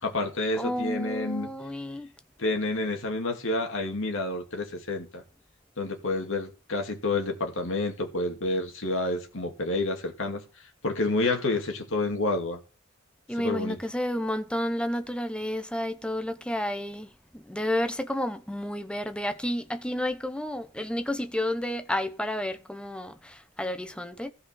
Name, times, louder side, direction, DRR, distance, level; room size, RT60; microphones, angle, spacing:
voice 1, 0.0-1.5 2.4-5.2 5.8-10.4 10.8-12.6 13.4-13.8, left 2 dB, 65° left, 2.5 m, -29 dB
voice 2, 0.6-2.1 13.3-24.3, left 1 dB, 5° left, 0.9 m, -31 dB
14.0 x 5.3 x 6.4 m
head